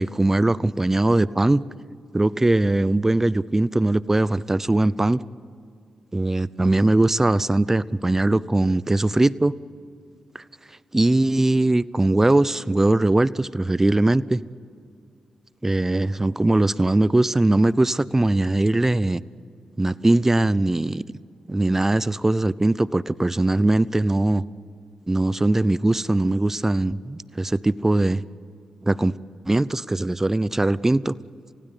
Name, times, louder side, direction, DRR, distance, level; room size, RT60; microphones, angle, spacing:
voice 1, 0.0-1.6 2.1-5.2 6.1-9.5 10.3-10.4 10.9-14.4 15.6-19.2 19.8-21.0 21.5-24.4 25.1-28.2 28.8-29.2 29.4-31.1, right 2 dB, 20° right, 19 dB, 0.7 m, -20 dB
29.0 x 16.5 x 8.4 m, 2.3 s
cardioid pair, 55°, 2 cm